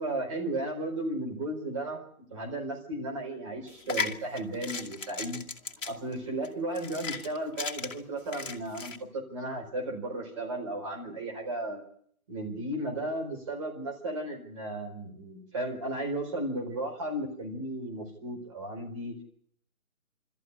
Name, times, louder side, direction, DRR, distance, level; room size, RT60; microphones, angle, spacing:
voice 1, 0.0-2.0 2.3-5.4 5.9-11.8 12.3-19.1, right 1 dB, 20° right, 1 dB, 4.5 m, -34 dB
sound 1, 3.7-9.0, left 4 dB, 60° left, 2.6 m, -36 dB
24.0 x 14.0 x 9.9 m, 0.64 s
figure-of-eight pair, 165°, 42 cm